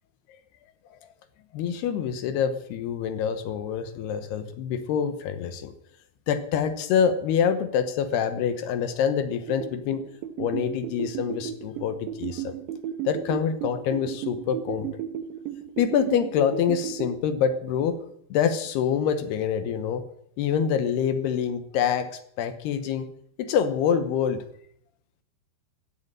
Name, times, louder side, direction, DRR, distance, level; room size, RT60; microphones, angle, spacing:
voice 1, 1.5-5.7 6.3-10.0 10.4-12.6 13.1-14.9 15.8-18.0 18.3-20.0 20.4-23.1 23.4-24.4, left 8 dB, 75° left, 11 dB, 2.7 m, -26 dB
sound 1, 9.5-17.2, right 10 dB, 80° right, 3.1 m, -35 dB
15.5 x 8.2 x 8.9 m, 0.68 s
omnidirectional pair, 5.3 m